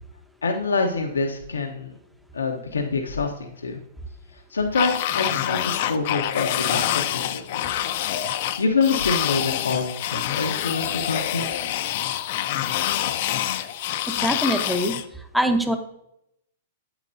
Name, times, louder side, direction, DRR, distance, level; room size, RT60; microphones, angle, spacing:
voice 1, 0.4-1.9 2.3-3.8 4.5-7.9 8.6-11.5, left 4 dB, 90° left, 3 dB, 1.0 m, -26 dB
sound 1, 4.7-15.1, left 12 dB, 55° left, 0.7 m, -26 dB
voice 2, 14.2-14.9 15.3-15.8, equal, ahead, 6 dB, 0.9 m, -22 dB
9.0 x 8.2 x 2.7 m, 0.79 s
hypercardioid pair, 115°, 0 cm